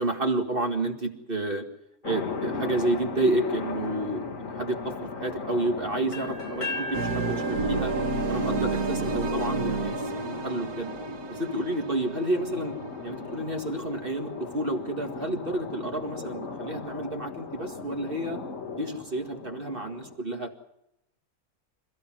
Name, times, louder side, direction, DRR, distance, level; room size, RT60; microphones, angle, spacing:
voice 1, 0.0-1.7 2.0-7.9 8.3-10.9 11.3-12.7 13.0-18.4 18.8-20.5, right 2 dB, 35° right, 4 dB, 2.1 m, -30 dB
sound 1, 2.0-20.1, left 4 dB, 60° left, 2.5 m, -37 dB
sound 2, 6.1-10.0, left 1 dB, 85° left, 4.5 m, -38 dB
sound 3, 6.9-13.8, right 3 dB, 80° right, 1.8 m, -31 dB
27.5 x 15.5 x 7.5 m, 0.83 s
omnidirectional pair, 1.6 m